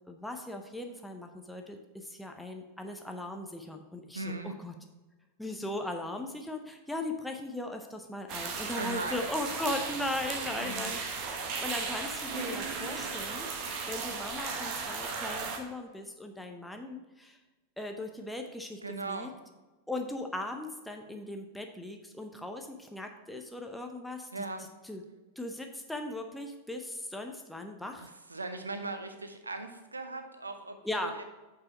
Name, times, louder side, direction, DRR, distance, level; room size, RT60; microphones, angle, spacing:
voice 1, 0.1-4.7 5.4-17.4 17.8-18.8 19.1-19.3 19.9-24.4 24.8-25.0 25.4-28.1 30.8-31.1, left 1 dB, 5° left, 3 dB, 0.7 m, -38 dB
voice 2, 4.1-4.6 8.7-9.3 10.6-10.9 18.8-19.3 24.3-24.7 28.0-31.2, right 3 dB, 80° right, 7 dB, 0.8 m, -39 dB
sound 1, 8.3-15.6, right 4 dB, 40° right, 1.2 m, -36 dB
8.5 x 4.8 x 5.0 m, 1.2 s
figure-of-eight pair, 90°, 0 cm